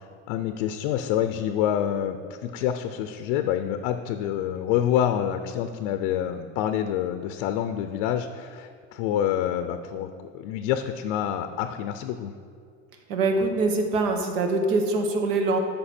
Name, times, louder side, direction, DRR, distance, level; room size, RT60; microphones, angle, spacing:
voice 1, 0.0-2.2 2.4-10.1 10.3-12.3, left 10 dB, 55° left, 8 dB, 0.6 m, -27 dB
voice 2, 13.1-15.6, right 3 dB, 85° right, 4 dB, 1.4 m, -24 dB
13.0 x 5.3 x 4.3 m, 2.3 s
supercardioid pair, 155°, 37 cm